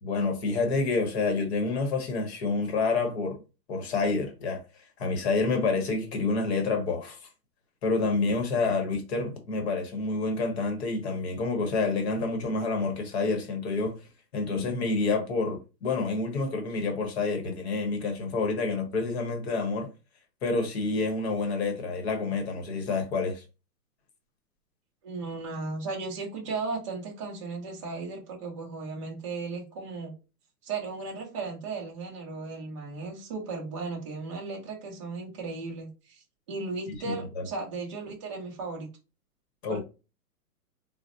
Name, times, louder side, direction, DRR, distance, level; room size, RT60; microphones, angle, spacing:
voice 1, 0.0-3.4 3.7-4.6 5.0-7.3 7.8-13.9 14.3-19.9 20.4-23.4 36.9-37.4 39.6-39.8, left 3 dB, 45° left, 0.9 m, -28 dB
voice 2, 25.0-30.1 30.6-38.9 39.7-39.8, right 4 dB, 20° right, 0.6 m, -36 dB
3.9 x 2.0 x 2.5 m
hypercardioid pair, 165°, 46 cm